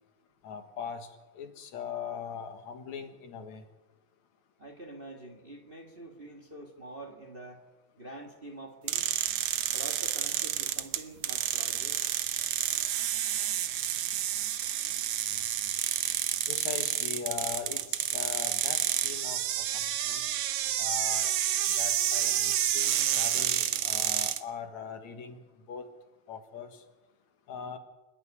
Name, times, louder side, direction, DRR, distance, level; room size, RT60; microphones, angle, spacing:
voice 1, 0.4-1.1 1.4-3.6 16.5-20.2 20.8-21.3 21.8-25.4 25.7-25.9 26.3-26.8 27.5-27.8, left 7 dB, 75° left, 7 dB, 2.8 m, -40 dB
voice 2, 4.6-7.6 8.0-9.1 9.7-12.0, right 1 dB, 25° right, 2 dB, 1.7 m, -46 dB
sound 1, 8.9-24.4, right 11 dB, 65° right, 1.8 m, -29 dB
28.0 x 10.0 x 9.8 m, 1.2 s
omnidirectional pair, 3.3 m